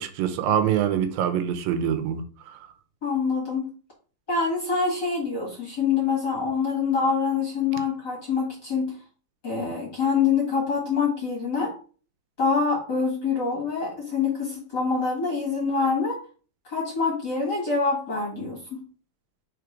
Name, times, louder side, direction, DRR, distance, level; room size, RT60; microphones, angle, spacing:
voice 1, 0.0-2.7, right 9 dB, 80° right, 2.4 m, -25 dB
voice 2, 3.0-3.7 4.3-9.0 9.4-11.7 12.4-16.2 16.6-18.8, left 5 dB, 40° left, 1.7 m, -25 dB
4.9 x 4.4 x 4.6 m
omnidirectional pair, 4.1 m